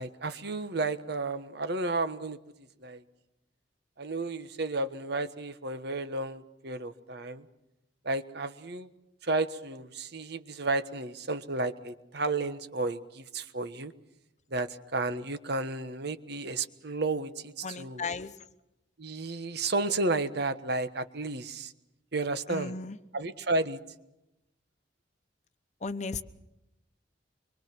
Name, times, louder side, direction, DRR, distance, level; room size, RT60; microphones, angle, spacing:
voice 1, 0.0-2.4 2.8-3.0 4.0-7.5 8.0-8.9 9.2-13.9 14.5-18.0 19.0-21.7 22.1-22.7 23.1-23.8, right 2 dB, 65° right, 11 dB, 1.3 m, -32 dB
voice 2, 17.6-18.4 22.5-23.0 25.8-26.2, left 4 dB, 40° left, 12 dB, 0.9 m, -35 dB
25.0 x 23.5 x 6.0 m, 0.91 s
head